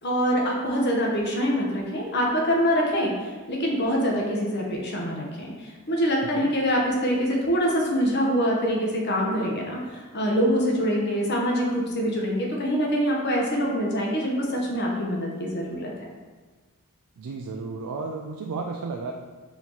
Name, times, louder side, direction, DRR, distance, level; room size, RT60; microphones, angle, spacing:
voice 1, 0.0-15.9, equal, 50° left, -2 dB, 0.9 m, -25 dB
voice 2, 17.2-19.1, right 4 dB, 80° right, 1 dB, 0.4 m, -33 dB
4.2 x 3.0 x 3.9 m, 1.4 s
head